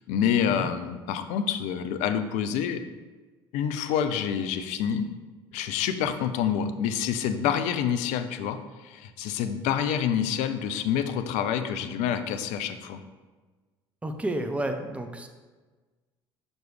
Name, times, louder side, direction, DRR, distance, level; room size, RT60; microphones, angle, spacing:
voice 1, 0.1-2.8 3.5-5.1 5.5-8.6 8.8-13.0, left 8 dB, 65° left, 9 dB, 0.5 m, -27 dB
voice 2, 14.0-15.3, right 1 dB, 10° right, 6 dB, 0.6 m, -31 dB
6.0 x 5.1 x 3.3 m, 1.3 s
hypercardioid pair, 60°, 13 cm